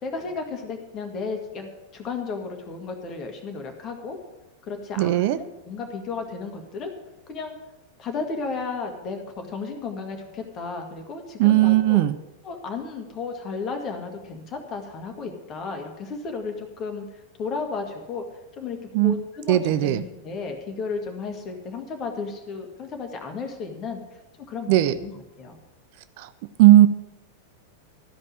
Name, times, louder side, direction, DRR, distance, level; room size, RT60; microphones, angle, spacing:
voice 1, 0.0-4.2 4.7-6.9 7.3-7.5 8.0-12.0 12.4-17.0 17.4-18.2 18.6-24.0 24.4-25.6, left 4 dB, 30° left, 4 dB, 1.9 m, -33 dB
voice 2, 5.0-5.4 11.4-12.1 18.9-19.1 19.5-20.0 24.7-24.9 26.2-26.3 26.6-26.9, right 14 dB, 50° right, 13 dB, 0.4 m, -17 dB
13.0 x 5.4 x 9.0 m, 1.0 s
figure-of-eight pair, 90°, 0 cm